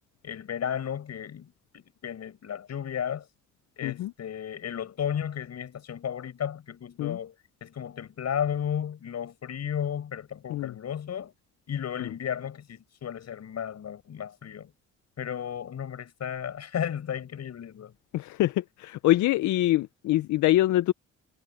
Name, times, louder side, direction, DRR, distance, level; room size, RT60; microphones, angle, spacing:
voice 1, 0.2-3.3 3.8-7.3 7.6-11.3 11.7-14.7 15.2-17.9, left 8 dB, 60° left, 7.1 m, -34 dB
voice 2, 18.1-20.9, left 15 dB, 75° left, 0.5 m, -24 dB
cardioid pair, 90°, 30 cm